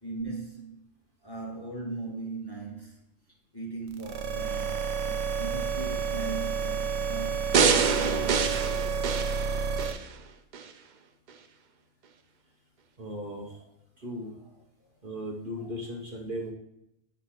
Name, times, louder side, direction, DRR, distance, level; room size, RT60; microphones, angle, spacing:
voice 1, 0.0-0.8 1.2-3.0 3.5-7.6 7.9-8.6 15.6-15.7, right 3 dB, 20° left, 1.1 m, -39 dB
sound 1, 3.9-9.9, right 6 dB, 85° right, 1.1 m, -30 dB
sound 2, 7.5-10.0 10.5-10.6, right 6 dB, 70° right, 0.4 m, -25 dB
voice 2, 13.0-13.6 14.0-14.3 15.0-16.5, equal, 45° right, 0.9 m, -37 dB
8.0 x 3.2 x 5.6 m
omnidirectional pair, 1.4 m